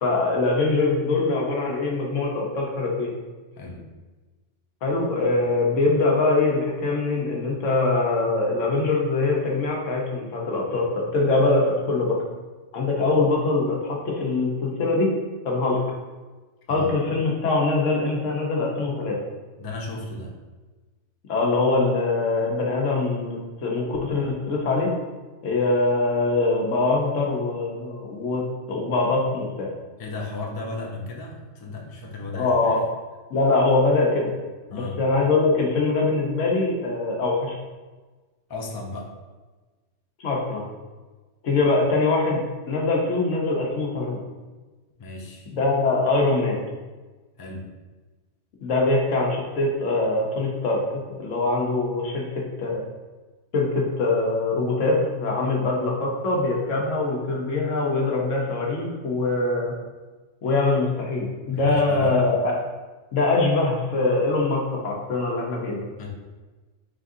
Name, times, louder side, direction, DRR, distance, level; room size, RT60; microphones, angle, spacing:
voice 1, 0.0-3.1 4.8-12.2 12.7-15.1 15.4-15.8 16.7-19.2 21.3-24.9 25.4-29.7 32.3-32.8 33.3-34.3 34.7-37.5 40.2-40.7 41.4-42.4 42.7-44.2 45.5-46.6 48.6-52.8 53.5-59.7 60.4-62.6 63.1-65.8, left 3 dB, 80° left, -1 dB, 1.2 m, -23 dB
voice 2, 3.5-3.9 16.7-16.9 19.6-20.3 30.0-32.8 34.7-35.0 38.5-39.1 41.5-41.6 45.0-45.5 47.4-47.7 61.5-62.2 66.0-66.1, left 3 dB, 40° left, -1 dB, 0.3 m, -35 dB
4.5 x 3.6 x 2.6 m, 1.3 s
omnidirectional pair, 1.3 m